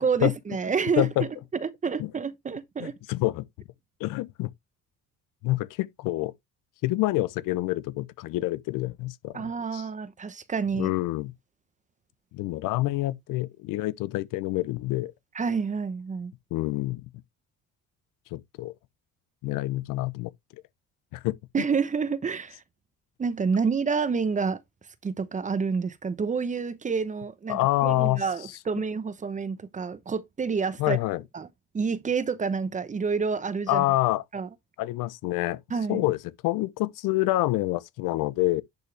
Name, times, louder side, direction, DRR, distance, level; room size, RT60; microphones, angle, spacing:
voice 1, 0.0-3.0 9.3-10.9 15.3-16.3 21.5-22.6 23.2-24.6 25.0-31.0 31.3-31.5 31.7-33.8 34.3-34.5 35.7-36.0, right 5 dB, 25° right, 0.9 m, -28 dB
voice 2, 2.8-3.5 4.0-4.5 5.4-6.3 6.8-9.4 9.7-9.9 10.7-11.3 12.3-15.1 16.5-17.1 18.3-18.7 19.4-20.3 21.1-21.4 27.5-28.2 30.8-31.2 33.7-34.2 34.8-35.6 35.9-36.2 36.4-38.6, left 17 dB, 85° left, 0.8 m, -27 dB
10.5 x 5.6 x 3.4 m
cardioid pair, 135°, 32 cm